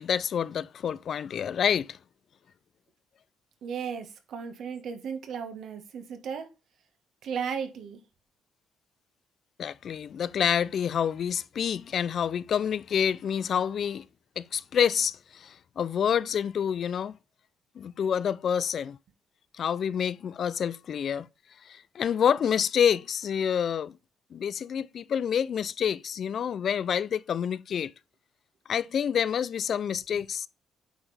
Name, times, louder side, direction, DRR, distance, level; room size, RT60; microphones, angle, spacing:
voice 1, 0.0-2.0 9.6-14.0 14.4-17.2 17.8-19.0 19.6-21.3 21.7-23.9 24.3-27.9 28.7-30.5, left 8 dB, 60° left, 0.4 m, -28 dB
voice 2, 3.6-6.5 7.2-8.0 30.1-30.2, right 7 dB, 70° right, 1.4 m, -35 dB
9.1 x 4.4 x 3.3 m
cardioid pair, 90°, 0 cm